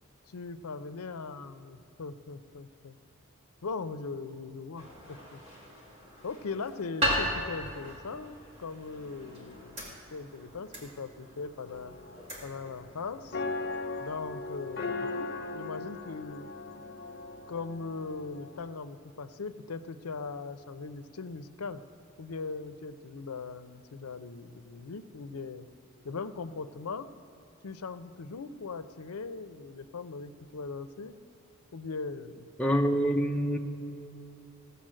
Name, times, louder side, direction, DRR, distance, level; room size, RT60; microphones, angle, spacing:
voice 1, 0.3-3.0 3.6-5.4 6.2-11.9 12.4-13.4 14.0-16.5 17.5-21.8 22.2-25.7 26.0-27.1 27.6-31.2 31.7-32.5, left 4 dB, 85° left, 12 dB, 0.6 m, -40 dB
sound 1, 4.8-14.9, equal, 30° right, 2.3 m, -38 dB
sound 2, 11.6-18.7, left 3 dB, 45° left, 0.6 m, -39 dB
voice 2, 32.6-33.6, equal, 5° left, 2 dB, 0.6 m, -26 dB
16.0 x 7.0 x 7.6 m, 2.8 s
head